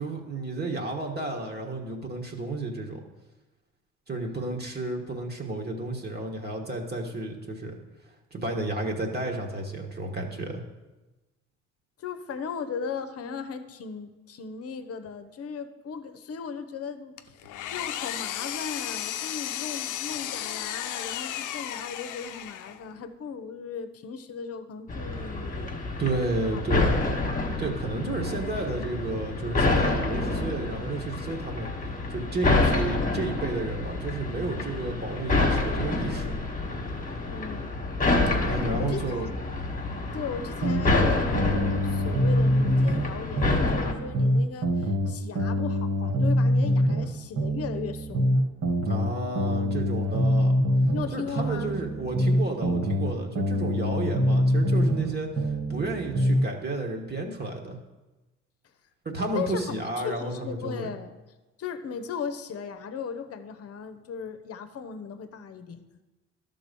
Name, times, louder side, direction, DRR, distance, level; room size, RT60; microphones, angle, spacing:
voice 1, 0.0-3.0 4.1-7.8 8.3-10.6 26.0-27.0 27.6-31.7 32.1-36.4 38.5-39.3 48.8-50.5 51.1-57.8 59.0-60.9, right 2 dB, 35° right, 1 dB, 1.4 m, -32 dB
voice 2, 12.0-25.8 26.4-26.6 37.3-37.8 38.8-39.3 40.1-48.3 50.9-51.7 59.3-61.2 61.6-65.8, left 6 dB, 50° left, 10 dB, 0.8 m, -37 dB
Engine, 17.2-22.9, left 11 dB, 85° left, 0.5 m, -34 dB
sound 1, 24.9-43.9, left 3 dB, 25° left, 1.4 m, -28 dB
sound 2, 40.6-43.1 43.4-47.1 47.4-51.1 51.4-55.1 55.4-56.4, equal, 55° right, 2.1 m, -24 dB
11.5 x 3.9 x 6.8 m, 1.1 s
cardioid pair, 90°, 30 cm